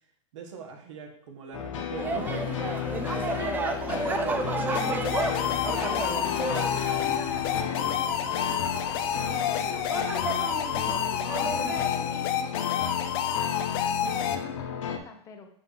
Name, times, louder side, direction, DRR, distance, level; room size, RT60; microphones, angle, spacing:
voice 1, 0.3-2.9, right 5 dB, 75° right, 3 dB, 1.3 m, -41 dB
sound 1, 1.5-15.0, left 8 dB, 80° left, 0.8 m, -33 dB
sound 2, 2.0-11.9, right 3 dB, 10° right, 0.4 m, -33 dB
voice 2, 3.1-5.2 5.5-6.6 7.0-8.6 8.9-9.0 9.3-15.5, left 5 dB, 20° left, 5 dB, 0.8 m, -44 dB
sound 3, 4.7-14.4, left 9 dB, 50° left, 0.6 m, -29 dB
6.9 x 2.7 x 5.4 m, 0.62 s
supercardioid pair, 145°, 16 cm